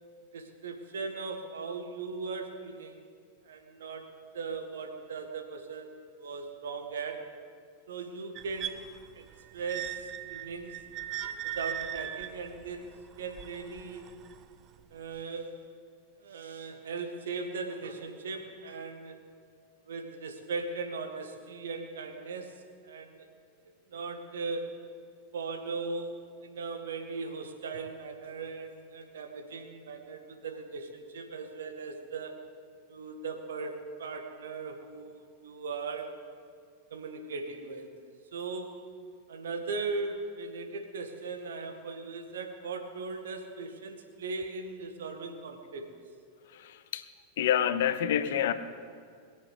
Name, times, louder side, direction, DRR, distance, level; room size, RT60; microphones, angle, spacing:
voice 1, 0.3-3.1 3.4-7.3 7.9-8.9 9.1-9.2 9.5-10.8 11.4-12.9 13.2-14.1 14.9-15.6 16.2-19.2 19.8-23.3 23.6-24.8 25.3-26.2 26.4-32.4 32.9-36.1 36.9-37.9 38.3-38.8 39.3-45.9, right 4 dB, 60° right, 5 dB, 1.9 m, -38 dB
sound 1, 8.4-14.4 15.2-15.3, right 11 dB, 35° right, 0.7 m, -39 dB
voice 2, 46.5-47.1 47.4-48.5, left 10 dB, 55° left, 11 dB, 1.0 m, -28 dB
21.5 x 7.5 x 8.2 m, 2.1 s
figure-of-eight pair, 90°, 0 cm